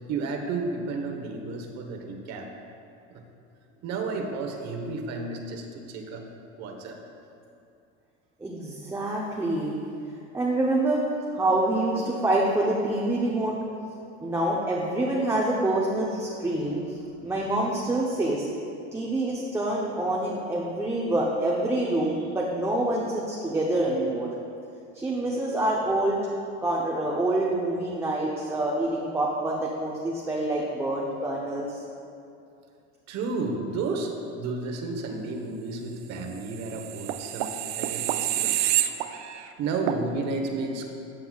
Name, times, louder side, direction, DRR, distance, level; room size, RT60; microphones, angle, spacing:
voice 1, 0.1-2.5 3.8-6.2 6.6-7.0 33.1-37.5 37.8-38.6 39.6-40.9, right 3 dB, 45° right, 3 dB, 1.2 m, -32 dB
voice 2, 8.4-9.8 10.3-11.0 11.3-13.6 14.2-16.8 17.2-18.5 18.9-24.3 24.9-26.2 26.6-31.7, right 1 dB, 5° right, -4 dB, 0.7 m, -26 dB
sound 1, 36.6-39.5 39.9-40.0, right 13 dB, 70° right, 0.6 m, -28 dB
13.5 x 7.7 x 2.4 m, 2.6 s
supercardioid pair, 130°, 36 cm